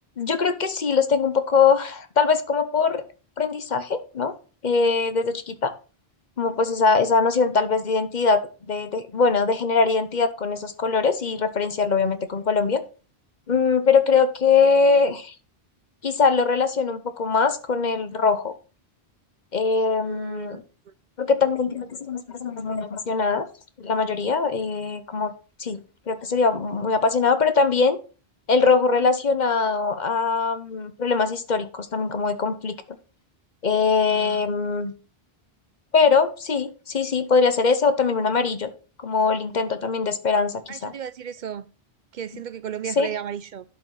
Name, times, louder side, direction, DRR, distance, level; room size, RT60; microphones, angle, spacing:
voice 1, 0.2-3.0 3.4-4.3 4.6-5.7 6.4-8.4 8.7-12.8 13.5-15.3 16.0-18.5 19.5-20.6 21.2-23.5 23.8-25.3 25.6-28.0 28.5-32.7 33.6-34.9 35.9-38.7 39.0-40.9 43.0-43.1, left 4 dB, 45° left, 1.0 m, -22 dB
voice 2, 20.0-20.7 34.1-34.4 40.7-41.6 42.1-43.6, right 8 dB, 55° right, 0.6 m, -34 dB
11.5 x 5.1 x 4.0 m
omnidirectional pair, 1.1 m